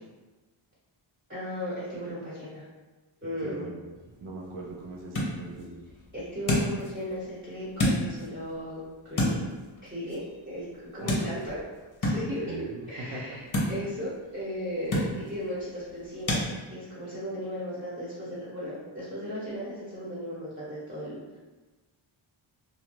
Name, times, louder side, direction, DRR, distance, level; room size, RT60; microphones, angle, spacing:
voice 1, 1.3-2.6 3.2-3.7 6.1-9.4 9.8-11.6 12.0-21.4, equal, 20° right, -10 dB, 1.0 m, -36 dB
voice 2, 3.4-3.8 4.2-5.8 11.0-11.3 12.2-12.8 13.1-13.2, right 2 dB, 75° right, -2 dB, 0.7 m, -40 dB
sound 1, 4.0-16.5, left 1 dB, 40° left, 0.7 m, -33 dB
2.7 x 2.3 x 3.0 m, 1.2 s
wide cardioid pair, 115°, 49 cm